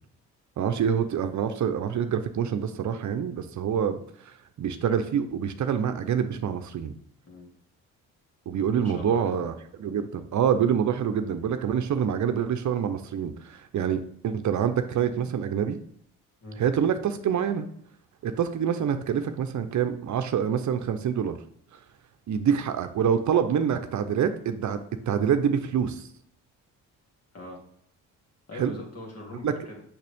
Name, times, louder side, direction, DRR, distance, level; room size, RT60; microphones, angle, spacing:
voice 1, 0.6-6.9 8.5-15.8 16.6-17.7 18.2-21.4 22.3-24.8 25.1-26.1 28.5-28.7 29.4-29.5, right 8 dB, 55° right, 8 dB, 0.7 m, -26 dB
voice 2, 8.6-9.3 16.4-16.6 27.3-27.6 28.5-29.8, left 2 dB, 45° left, -1 dB, 2.7 m, -41 dB
6.5 x 5.9 x 3.5 m, 0.66 s
cardioid pair, 75°, 34 cm